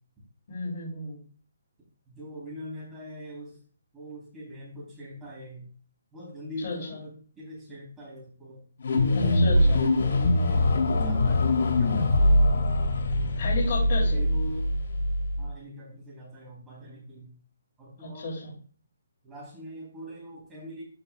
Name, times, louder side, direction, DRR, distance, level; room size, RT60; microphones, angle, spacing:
voice 1, 0.5-1.2 6.6-7.0 9.1-9.8 13.4-14.2 18.0-18.5, left 3 dB, 45° left, -6 dB, 3.4 m, -33 dB
voice 2, 2.1-3.6 3.9-5.7 6.1-8.6 8.9-12.4 14.1-14.7 15.4-17.3 17.8-18.3 19.2-20.8, equal, 10° right, -5 dB, 3.8 m, -42 dB
sound 1, 8.8-15.5, left 1 dB, 65° left, 3.4 m, -23 dB
13.0 x 5.8 x 2.5 m, 0.42 s
hypercardioid pair, 165°, 0 cm